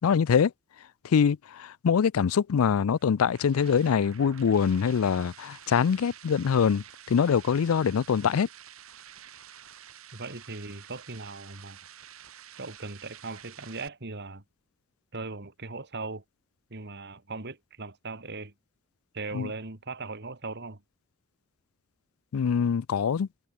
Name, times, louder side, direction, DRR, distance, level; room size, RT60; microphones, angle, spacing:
voice 1, 0.0-0.5 1.0-8.5 19.3-19.5 22.3-23.3, left 7 dB, 90° left, 0.4 m, -24 dB
sound 1, 2.9-13.9, right 9 dB, 85° right, 3.4 m, -50 dB
voice 2, 10.1-11.8 12.6-14.4 15.1-16.2 16.7-18.5 19.1-20.8, right 3 dB, 55° right, 2.6 m, -39 dB
head